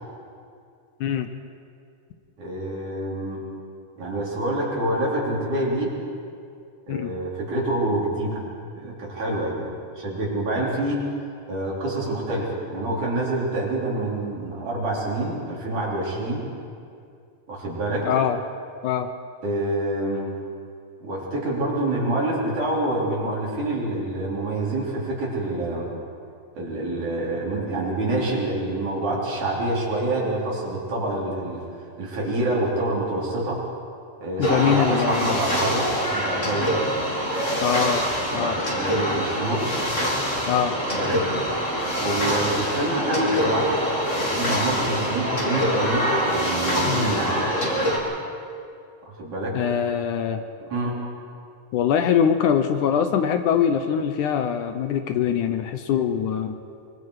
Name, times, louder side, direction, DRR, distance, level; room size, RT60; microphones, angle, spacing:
voice 1, 2.4-3.4 4.0-5.9 6.9-8.4 8.8-11.1 11.5-16.4 17.5-18.1 19.4-20.3 21.0-25.9 26.6-33.6 34.2-36.7 38.2-39.6 41.0-41.3 42.0-47.4 49.2-49.6 50.6-51.0, right 1 dB, 60° right, -4 dB, 5.2 m, -27 dB
voice 2, 18.0-18.4 18.8-19.1 34.4-35.4 37.6-38.0 38.3-38.6 40.5-40.8 46.9-47.2 49.5-50.4 51.7-56.6, left 8 dB, 75° left, 8 dB, 2.2 m, -23 dB
sound 1, 34.4-48.0, equal, 20° left, 3.2 m, -25 dB
24.0 x 24.0 x 4.9 m, 2.4 s
omnidirectional pair, 3.9 m